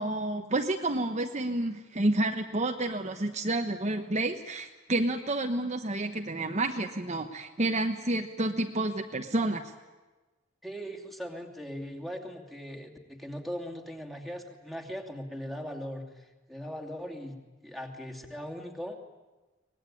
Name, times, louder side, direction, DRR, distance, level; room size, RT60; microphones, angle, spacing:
voice 1, 0.0-9.7, right 2 dB, 35° right, 5 dB, 1.1 m, -30 dB
voice 2, 10.6-19.0, equal, ahead, 0 dB, 2.7 m, -39 dB
24.0 x 19.5 x 9.9 m, 1.2 s
head